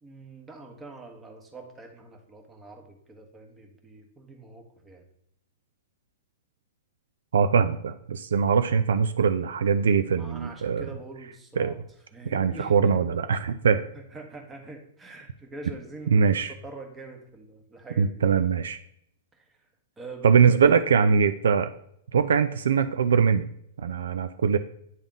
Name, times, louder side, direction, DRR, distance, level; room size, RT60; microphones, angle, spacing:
voice 1, 0.0-5.1 10.2-11.8 12.1-13.0 13.9-18.3 19.3-19.7 20.0-20.4, right 2 dB, 15° right, 2 dB, 1.3 m, -44 dB
voice 2, 7.3-10.9 11.6-11.7 12.2-13.8 16.1-16.5 18.0-18.8 20.2-21.7 22.1-23.4 23.8-24.6, right 6 dB, 70° right, 10 dB, 0.3 m, -22 dB
9.2 x 3.5 x 3.8 m, 0.72 s
hypercardioid pair, 110°, 0 cm